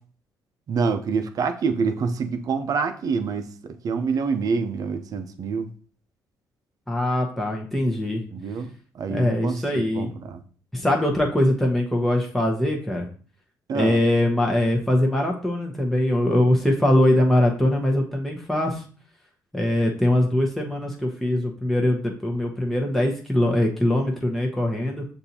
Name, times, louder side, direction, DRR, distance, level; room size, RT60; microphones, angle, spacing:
voice 1, 0.7-5.7 8.3-10.4 13.7-14.0, right 5 dB, 55° right, 0.6 m, -26 dB
voice 2, 6.9-8.2 9.1-10.1 10.7-13.1 13.7-18.8 19.5-25.1, left 1 dB, 5° left, 1.0 m, -22 dB
6.6 x 2.7 x 2.9 m
supercardioid pair, 75°, 7 cm